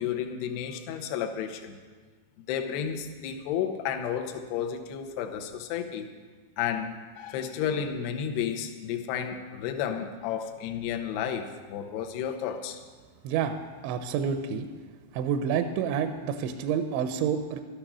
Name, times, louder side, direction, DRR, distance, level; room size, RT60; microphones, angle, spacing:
voice 1, 0.0-1.8 2.5-6.1 6.6-12.8, left 8 dB, 75° left, 4 dB, 2.8 m, -32 dB
voice 2, 13.2-13.6 13.8-14.7 15.1-17.6, right 7 dB, 80° right, 7 dB, 2.9 m, -28 dB
13.0 x 11.5 x 6.1 m, 1.5 s
omnidirectional pair, 5.4 m